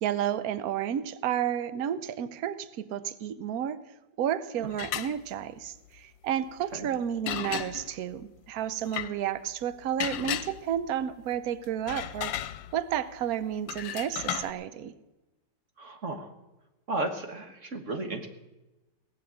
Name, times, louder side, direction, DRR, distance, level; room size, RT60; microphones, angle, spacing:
voice 1, 0.0-3.8 4.2-12.3 12.7-14.9, right 10 dB, 60° right, 15 dB, 1.1 m, -31 dB
sound 1, 4.7-5.1 7.3-8.0 8.9-9.1 10.0-10.9 11.6-13.0 13.7-14.5, left 12 dB, 85° left, 1.4 m, -34 dB
voice 2, 15.8-16.3 16.9-18.3, right 2 dB, 45° right, 6 dB, 1.6 m, -34 dB
19.0 x 7.0 x 8.8 m, 1.0 s
omnidirectional pair, 2.0 m